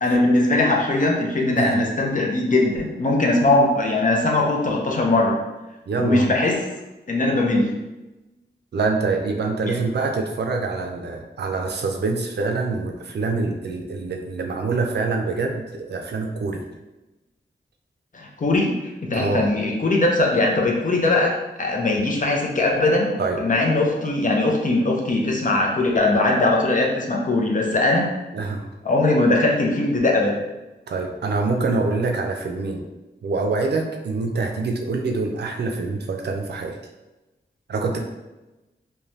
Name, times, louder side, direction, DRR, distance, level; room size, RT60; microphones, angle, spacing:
voice 1, 0.0-5.4 6.0-6.7 7.1-7.8 9.7-9.8 18.1-18.7 19.0-21.3 21.6-23.1 23.4-28.1 28.8-30.3 37.9-38.0, left 2 dB, 45° left, 0 dB, 0.6 m, -20 dB
voice 2, 5.9-6.2 8.7-16.6 19.1-19.5 23.2-23.4 28.3-28.7 30.9-32.8 33.2-36.8 37.7-38.0, right 3 dB, 65° right, 3 dB, 0.4 m, -25 dB
3.1 x 2.2 x 2.6 m, 1.0 s
wide cardioid pair, 65°, 18 cm